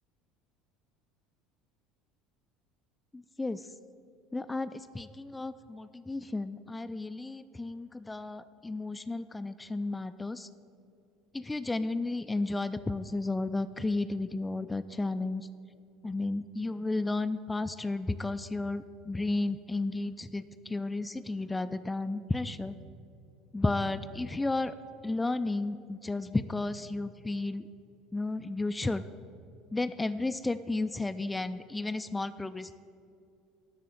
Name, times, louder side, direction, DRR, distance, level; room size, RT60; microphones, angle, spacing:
voice 1, 4.3-10.5 11.3-15.5 16.0-22.7 23.5-24.8 25.0-27.7 28.1-29.0 29.7-32.7, left 2 dB, 10° left, 11 dB, 0.3 m, -33 dB
12.0 x 4.1 x 7.8 m, 2.5 s
figure-of-eight pair, 65°, 0 cm